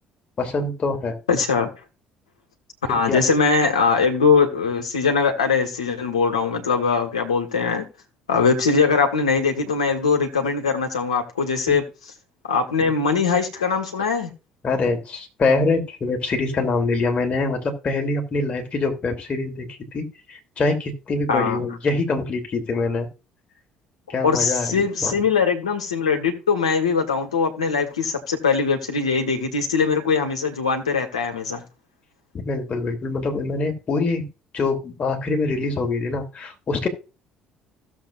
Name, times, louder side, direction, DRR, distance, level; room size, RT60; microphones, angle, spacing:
voice 1, 0.4-1.1 2.9-3.2 12.8-12.9 14.6-23.1 24.1-25.3 32.3-34.3 34.5-36.9, left 3 dB, 40° left, 3 dB, 2.8 m, -24 dB
voice 2, 1.3-1.7 2.9-7.8 8.3-11.8 12.5-14.3 21.3-21.7 24.2-31.6, left 5 dB, 85° left, 3 dB, 1.4 m, -21 dB
16.0 x 7.3 x 2.5 m, 0.30 s
hypercardioid pair, 55°, 3 cm